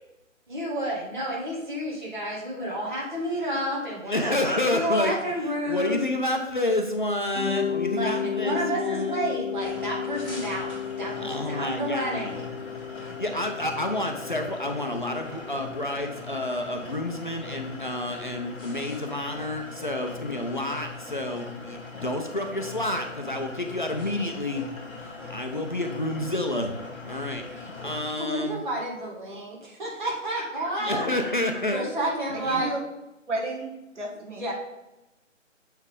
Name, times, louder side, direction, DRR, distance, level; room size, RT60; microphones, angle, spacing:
voice 1, 0.5-6.0 7.4-7.6 7.9-10.7 11.0-12.5 27.8-31.1 31.7-32.7 34.4-34.5, right 1 dB, 40° right, -4 dB, 2.1 m, -30 dB
voice 2, 4.1-9.3 11.2-12.4 13.0-24.6 25.0-26.7 27.0-28.6 30.8-31.8 32.4-32.6, left 1 dB, 40° left, 3 dB, 0.5 m, -29 dB
Mallet percussion, 7.3-16.1, left 8 dB, 60° left, 0.9 m, -33 dB
sound 1, 9.6-28.0, left 3 dB, 10° left, 2.1 m, -40 dB
voice 3, 32.3-32.8 33.3-34.4, right 2 dB, 65° right, 0 dB, 1.7 m, -33 dB
7.0 x 4.5 x 3.6 m, 0.96 s
figure-of-eight pair, 170°, 39 cm